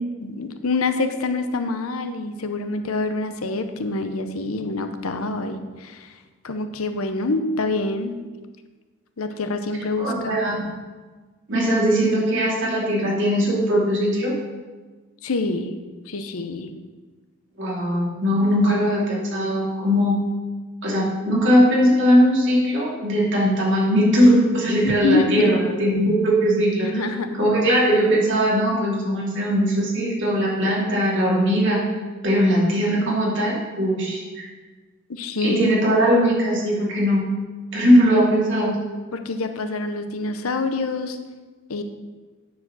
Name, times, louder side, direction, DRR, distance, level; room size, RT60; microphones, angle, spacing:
voice 1, 0.2-6.1 6.4-8.2 9.2-10.4 15.2-15.8 16.1-16.7 24.8-25.6 26.8-27.5 35.1-35.6 39.1-41.2 41.7-41.8, left 3 dB, 85° left, 8 dB, 0.8 m, -26 dB
voice 2, 10.0-10.7 11.5-14.4 17.6-20.2 20.8-27.1 27.4-31.8 32.2-34.4 35.4-37.2 37.7-38.8, equal, 60° right, -4 dB, 2.7 m, -20 dB
9.3 x 4.9 x 6.2 m, 1.4 s
head